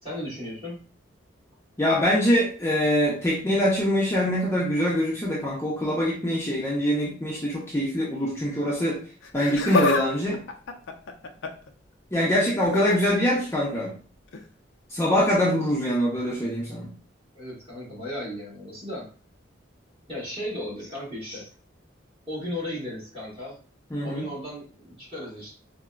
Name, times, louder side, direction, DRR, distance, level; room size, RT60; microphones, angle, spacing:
voice 1, 0.0-0.8 17.3-19.1 20.1-21.5 22.3-23.6 24.0-25.5, left 1 dB, 30° right, -7 dB, 1.5 m, -35 dB
voice 2, 1.8-9.0 9.3-10.4 12.1-14.0 14.9-16.9 23.9-24.3, equal, 15° left, -6 dB, 0.5 m, -24 dB
Laughter, 9.2-10.0 10.3-11.7 12.6-13.0 14.3-14.5 15.4-15.5, left 3 dB, 70° left, 0.4 m, -27 dB
4.0 x 2.0 x 2.3 m, 0.41 s
head